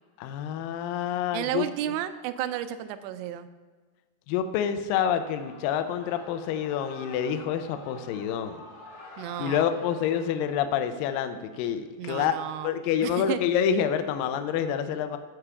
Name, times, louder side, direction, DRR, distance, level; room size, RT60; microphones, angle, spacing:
voice 1, 0.2-1.7 4.3-8.6 9.4-12.3 12.6-15.2, left 8 dB, 85° left, 8 dB, 2.0 m, -27 dB
voice 2, 1.3-3.5 9.2-9.7 12.0-12.7 13.0-13.4, right 11 dB, 85° right, 12 dB, 2.6 m, -32 dB
Shout / Cheering, 5.2-10.6, left 3 dB, 55° left, 1.3 m, -48 dB
13.5 x 4.8 x 6.9 m, 1.4 s
omnidirectional pair, 4.8 m